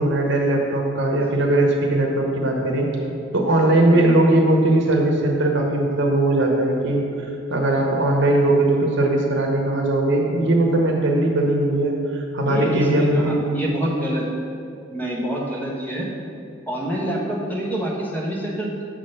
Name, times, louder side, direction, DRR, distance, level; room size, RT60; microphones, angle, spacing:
voice 1, 0.0-2.9 3.3-7.0 7.5-13.4, right 1 dB, 65° right, 1 dB, 0.9 m, -19 dB
voice 2, 12.5-14.3 14.9-16.1 16.7-18.8, right 1 dB, 10° left, -4 dB, 1.1 m, -26 dB
7.2 x 3.8 x 6.5 m, 2.4 s
head